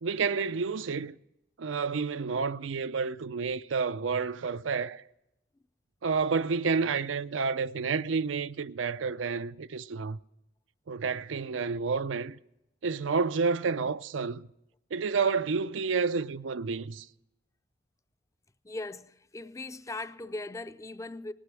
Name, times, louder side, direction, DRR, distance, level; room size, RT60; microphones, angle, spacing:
voice 1, 0.0-1.1 1.6-5.0 6.0-10.2 10.9-12.4 12.8-14.4 14.9-17.1, right 5 dB, 90° right, 0.5 m, -30 dB
voice 2, 18.6-21.3, left 2 dB, 15° left, 0.4 m, -39 dB
18.0 x 9.9 x 6.2 m
head